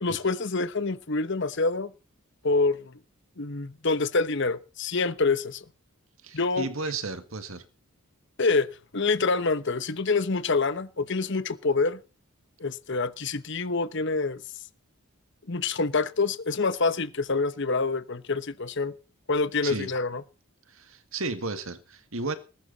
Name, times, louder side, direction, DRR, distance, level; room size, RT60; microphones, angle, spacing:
voice 1, 0.0-1.9 2.4-2.9 3.4-5.6 6.3-6.7 8.4-8.7 8.9-12.0 12.6-14.4 15.5-18.9 19.3-20.2, left 3 dB, 55° left, 1.1 m, -26 dB
voice 2, 6.2-7.6 19.6-19.9 20.7-22.4, right 3 dB, 70° right, 2.0 m, -33 dB
20.0 x 11.5 x 4.1 m
head